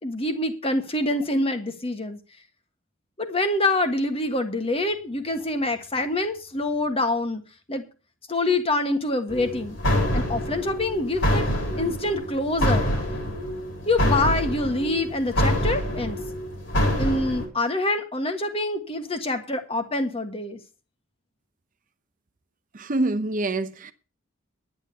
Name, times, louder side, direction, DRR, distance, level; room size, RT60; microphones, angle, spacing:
voice 1, 0.0-2.2 3.2-7.4 7.7-7.8 8.3-9.8 10.1-11.5 11.8-12.9 13.9-16.2 17.0-20.6, left 2 dB, 25° left, 1.5 m, -26 dB
sound 1, 9.3-17.4, equal, 60° left, 3.9 m, -26 dB
voice 2, 22.7-23.9, right 2 dB, 40° right, 0.7 m, -26 dB
10.5 x 9.0 x 6.9 m
head